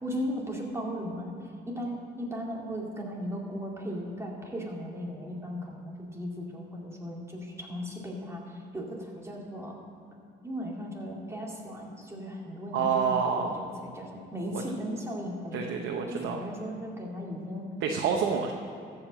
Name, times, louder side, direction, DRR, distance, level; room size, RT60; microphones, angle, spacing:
voice 1, 0.0-9.8 10.4-15.8 16.1-17.7, equal, 15° right, -2 dB, 2.4 m, -37 dB
voice 2, 12.7-13.5 14.5-14.6 15.5-16.4 17.8-18.5, right 6 dB, 85° right, 2 dB, 0.8 m, -28 dB
14.0 x 5.3 x 7.4 m, 2.6 s
cardioid pair, 90°, 20 cm